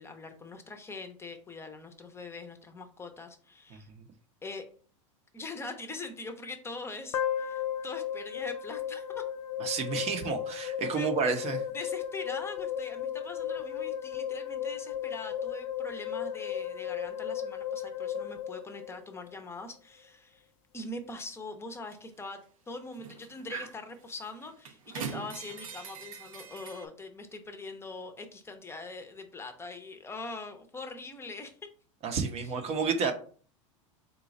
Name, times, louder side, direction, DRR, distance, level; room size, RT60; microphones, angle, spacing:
voice 1, 0.0-3.9 4.4-4.7 5.3-9.2 10.9-11.1 11.7-20.5 20.7-22.4 22.7-31.6 32.4-32.5, left 3 dB, 15° left, 7 dB, 0.7 m, -42 dB
sound 1, 7.1-19.4, left 9 dB, 85° left, 0.4 m, -35 dB
voice 2, 9.6-11.6 32.0-33.1, right 5 dB, 40° right, 5 dB, 0.7 m, -30 dB
sound 2, 21.9-22.0 23.0-23.8 24.1-26.9, right 6 dB, 90° right, 0.7 m, -41 dB
3.9 x 2.3 x 4.0 m, 0.43 s
hypercardioid pair, 105°, 17 cm